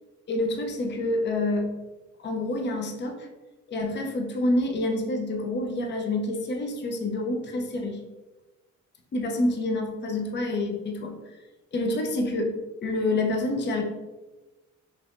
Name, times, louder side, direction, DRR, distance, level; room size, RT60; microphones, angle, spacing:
voice 1, 0.3-1.7 2.2-3.3 3.7-8.0 9.1-11.2 11.7-12.6 12.8-13.8, left 2 dB, 35° left, 2 dB, 0.6 m, -27 dB
3.4 x 3.1 x 2.4 m, 1.1 s
cardioid pair, 90°, 30 cm